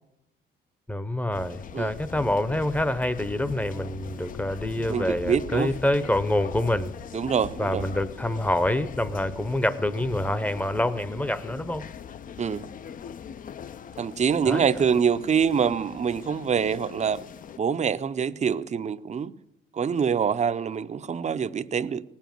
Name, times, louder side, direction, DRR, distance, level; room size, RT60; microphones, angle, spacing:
voice 1, 0.9-6.9 7.6-11.9 14.5-14.7, left 1 dB, 5° left, 0.7 m, -26 dB
sound 1, 1.3-17.6, left 8 dB, 45° left, 0.5 m, -40 dB
voice 2, 4.9-5.7 7.1-7.8 12.4-12.7 14.0-17.2 17.6-19.3 19.7-22.0, right 7 dB, 35° right, 0.6 m, -25 dB
18.0 x 7.3 x 9.2 m
cardioid pair, 90°, 20 cm